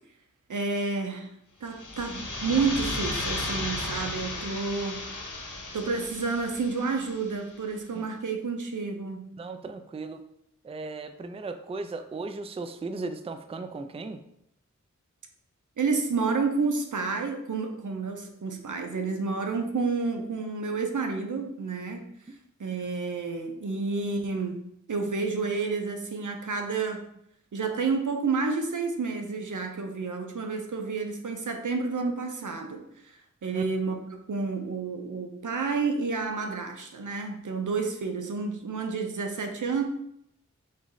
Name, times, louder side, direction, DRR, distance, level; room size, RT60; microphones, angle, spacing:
voice 1, 0.5-1.3 1.6-5.0 5.7-9.3 15.8-22.1 22.6-24.6 24.9-27.0 27.5-32.8 33.4-34.0 34.3-39.8, right 4 dB, 80° right, 4 dB, 0.6 m, -30 dB
sound 1, 1.7-7.3, left 2 dB, 80° left, 0.8 m, -34 dB
voice 2, 9.4-10.2 10.6-14.2 22.3-22.4 33.5-33.6, right 3 dB, 20° right, 8 dB, 0.3 m, -36 dB
4.1 x 3.1 x 3.8 m, 0.76 s
wide cardioid pair, 55°, 30 cm